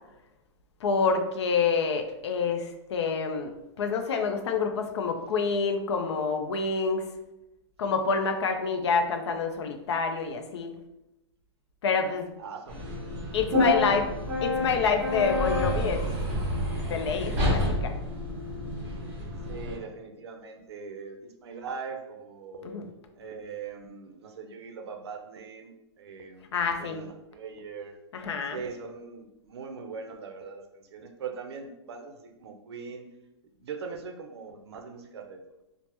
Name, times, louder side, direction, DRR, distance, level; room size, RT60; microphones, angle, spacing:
voice 1, 0.8-3.5 3.8-7.1 7.8-10.7 11.8-12.3 13.3-14.0 14.4-16.0 16.8-17.9 22.6-22.9 26.5-27.0 28.1-28.6, left 5 dB, 70° left, 6 dB, 0.4 m, -27 dB
voice 2, 12.4-12.8 13.5-14.0 19.5-22.7 23.1-28.0 28.5-33.1 33.6-35.4, right 5 dB, 65° right, 4 dB, 0.5 m, -41 dB
sound 1, 12.7-19.8, left 1 dB, 15° right, 0.8 m, -29 dB
3.2 x 2.0 x 2.9 m, 0.92 s
hypercardioid pair, 175°, 15 cm